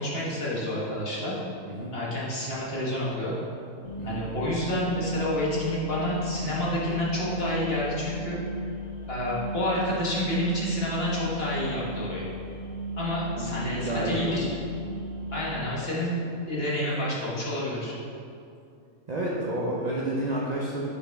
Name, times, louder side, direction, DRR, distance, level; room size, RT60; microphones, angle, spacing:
voice 1, 0.0-1.3 1.9-3.3 4.0-8.4 9.1-12.3 13.0-14.5 15.3-16.1 16.4-18.0, left 1 dB, 45° left, -6 dB, 1.5 m, -29 dB
sound 1, 3.8-15.6, equal, 70° left, 1.5 m, -37 dB
voice 2, 13.4-14.5 19.1-20.9, right 1 dB, 45° right, -5 dB, 0.6 m, -30 dB
6.6 x 5.1 x 3.4 m, 2.5 s
omnidirectional pair, 1.5 m